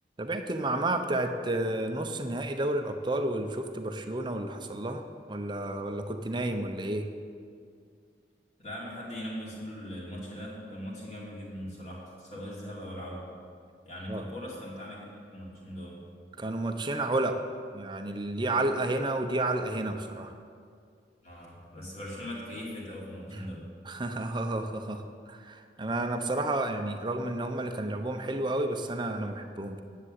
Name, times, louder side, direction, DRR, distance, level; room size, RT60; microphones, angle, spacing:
voice 1, 0.2-7.1 14.1-14.2 16.4-17.4 17.7-20.3 23.3-23.5 23.9-29.8, right 2 dB, 25° right, 6 dB, 0.8 m, -31 dB
voice 2, 8.6-13.2 13.8-16.0 21.2-23.7, equal, 40° left, -5 dB, 3.1 m, -40 dB
10.5 x 7.6 x 8.3 m, 2.3 s
head